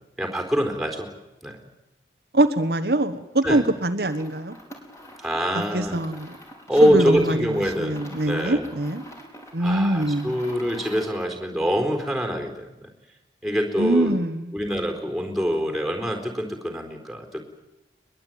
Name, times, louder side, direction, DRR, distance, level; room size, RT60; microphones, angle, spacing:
voice 1, 0.2-1.1 1.4-1.6 3.4-3.6 5.2-6.0 6.7-8.7 9.6-12.9 13.4-14.2 14.5-17.5, equal, ahead, 4 dB, 4.2 m, -25 dB
voice 2, 2.3-4.6 5.7-6.3 6.8-9.0 9.5-10.4 13.8-14.5, right 1 dB, 60° right, 7 dB, 1.3 m, -23 dB
sound 1, 4.0-11.3, equal, 15° left, 4.6 m, -44 dB
22.5 x 22.0 x 9.3 m, 0.93 s
head